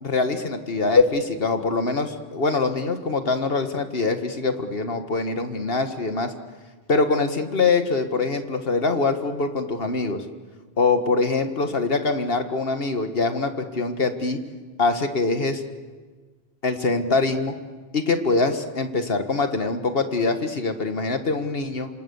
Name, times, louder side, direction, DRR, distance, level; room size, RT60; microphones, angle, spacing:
voice 1, 0.0-6.3 6.9-10.2 10.8-14.4 14.8-15.6 16.6-17.5 17.9-21.9, left 3 dB, 65° left, 8 dB, 1.9 m, -23 dB
27.0 x 26.5 x 7.1 m, 1.4 s
omnidirectional pair, 1.1 m